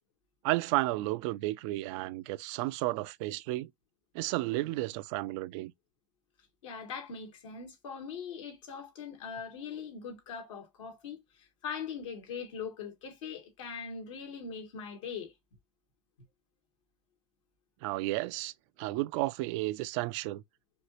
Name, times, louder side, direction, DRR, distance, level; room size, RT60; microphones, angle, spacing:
voice 1, 0.4-3.7 4.1-5.7 17.8-18.5 18.8-20.4, right 19 dB, 70° right, 0.5 m, -32 dB
voice 2, 6.6-15.3, left 6 dB, 80° left, 1.9 m, -41 dB
5.1 x 2.9 x 2.8 m
hypercardioid pair, 80°, 16 cm